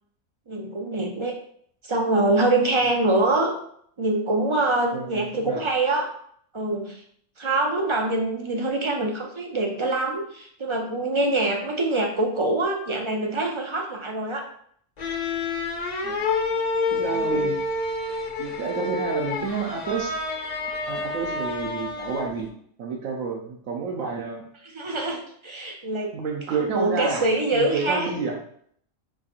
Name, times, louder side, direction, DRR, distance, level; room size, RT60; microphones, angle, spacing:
voice 1, 0.5-1.3 1.8-3.5 4.0-6.1 6.5-7.0 7.4-14.4 17.1-17.5 24.7-26.1 26.7-28.1, right 2 dB, 50° right, 1 dB, 0.3 m, -24 dB
voice 2, 4.9-5.6 16.0-16.2 16.9-17.6 18.4-20.1 20.9-22.5 22.8-24.4 26.1-27.3 27.5-28.4, right 4 dB, 80° right, 0 dB, 1.0 m, -29 dB
sound 1, 15.0-22.5, left 3 dB, 45° left, 0.6 m, -28 dB
4.6 x 2.4 x 4.2 m, 0.63 s
omnidirectional pair, 1.3 m